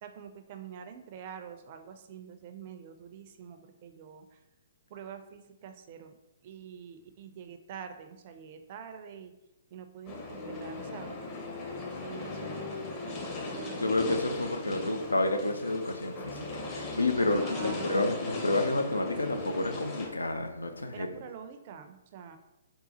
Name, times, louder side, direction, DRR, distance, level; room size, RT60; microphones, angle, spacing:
voice 1, 0.0-4.4 4.9-6.1 6.4-9.3 9.7-11.2 12.0-15.0 17.2-18.7 20.7-22.4, right 7 dB, 40° right, 0.4 m, -46 dB
sound 1, 10.1-20.1, left 2 dB, 30° left, 0.8 m, -38 dB
voice 2, 13.7-21.1, left 2 dB, 85° left, 0.5 m, -30 dB
3.8 x 2.3 x 4.1 m
figure-of-eight pair, 125°, 0 cm